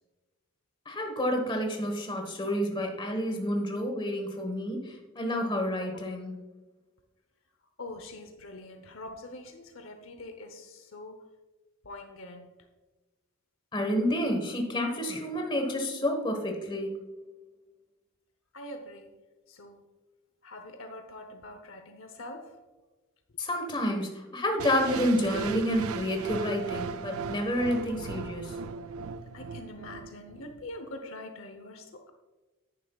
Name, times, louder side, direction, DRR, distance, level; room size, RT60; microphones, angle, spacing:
voice 1, 0.9-6.3 13.7-17.0 23.4-28.6, equal, 20° left, 3 dB, 1.3 m, -29 dB
voice 2, 7.8-11.3 11.8-12.6 18.5-19.2 19.5-19.8 20.4-22.6 29.3-32.1, left 1 dB, 60° left, 6 dB, 0.8 m, -44 dB
sound 1, 24.6-30.6, right 5 dB, 80° right, 0.4 m, -38 dB
10.5 x 9.5 x 2.4 m, 1.2 s
head